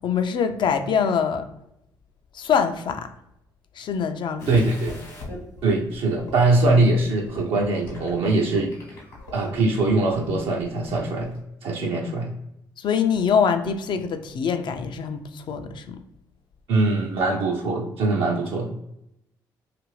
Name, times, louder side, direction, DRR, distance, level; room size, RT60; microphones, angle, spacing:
voice 1, 0.0-1.5 2.3-3.1 3.8-4.5 12.8-16.0, left 6 dB, 50° left, 8 dB, 0.4 m, -24 dB
sound 1, 4.4-11.4, left 2 dB, 90° left, 0.9 m, -42 dB
voice 2, 4.5-5.0 5.6-8.7 9.3-12.3 16.7-18.8, right 2 dB, 65° right, -1 dB, 0.5 m, -22 dB
2.6 x 2.5 x 3.0 m, 0.82 s
hypercardioid pair, 50°, 10 cm